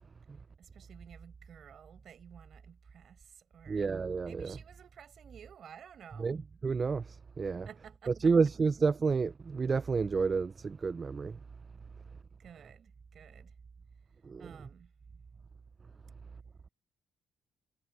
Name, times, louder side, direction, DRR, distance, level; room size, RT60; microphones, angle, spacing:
voice 1, 0.6-3.9 4.3-6.4 7.5-8.3 12.4-13.5 14.4-14.9, right 8 dB, 60° right, 6.0 m, -53 dB
voice 2, 3.7-4.5 6.2-7.7 8.2-11.4 14.2-14.4, right 4 dB, 35° right, 0.3 m, -30 dB
cardioid pair, 90°, 0 cm